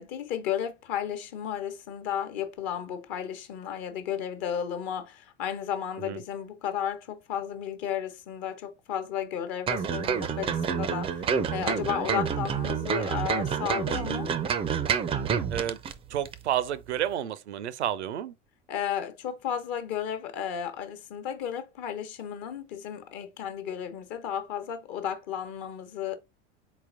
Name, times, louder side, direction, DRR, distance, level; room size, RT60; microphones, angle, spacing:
voice 1, 0.0-14.3 18.7-26.2, left 9 dB, 50° left, 0.9 m, -33 dB
sound 1, 9.7-15.9 16.2-16.4, right 7 dB, 15° right, 0.4 m, -28 dB
voice 2, 16.1-18.3, right 11 dB, 75° right, 0.5 m, -30 dB
4.1 x 3.9 x 2.5 m
figure-of-eight pair, 70°, 34 cm